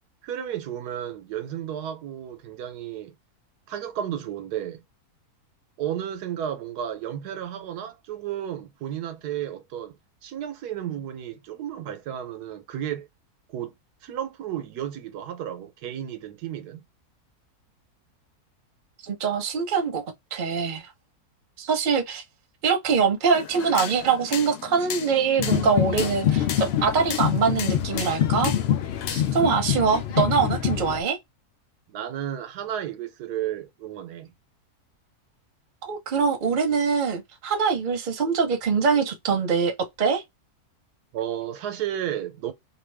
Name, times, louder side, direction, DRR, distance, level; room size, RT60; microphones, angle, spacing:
voice 1, 0.2-3.1 3.7-4.8 5.8-10.0 10.2-13.1 13.5-13.7 14.0-16.8 31.9-34.3 41.1-42.5, right 10 dB, 85° right, 1.3 m, -33 dB
voice 2, 19.0-20.0 20.3-20.9 21.6-22.2 22.6-28.5 29.1-31.2 35.8-39.7 40.0-40.2, right 5 dB, 40° right, 0.7 m, -23 dB
sound 1, 23.3-29.4, left 9 dB, 85° left, 1.2 m, -36 dB
sound 2, 25.4-31.0, left 10 dB, 70° left, 0.6 m, -25 dB
2.9 x 2.3 x 3.3 m
omnidirectional pair, 1.6 m